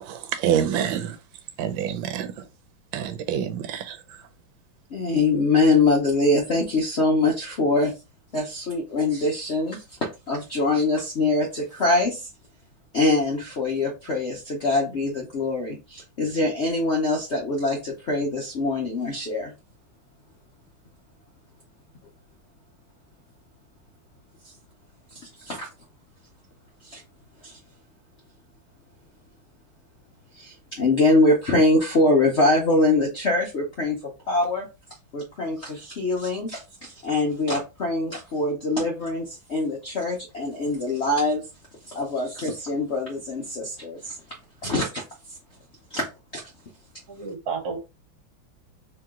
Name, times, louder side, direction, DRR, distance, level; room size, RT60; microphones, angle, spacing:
voice 1, 0.4-1.1 1.6-2.3 2.9-3.8, right 9 dB, 80° right, 1.3 m, -25 dB
voice 2, 4.9-7.9 8.3-9.8 10.3-12.3 12.9-19.5 24.4-24.5 25.1-25.7 26.8-27.0 27.4-27.6 30.3-34.0 34.3-34.7 35.1-41.4 41.9-44.2 44.6-45.0 45.9-46.1 46.3-46.4, left 2 dB, 70° left, 0.6 m, -23 dB
voice 3, 47.1-47.8, right 5 dB, 55° right, 1.3 m, -31 dB
3.1 x 2.9 x 3.6 m
omnidirectional pair, 2.2 m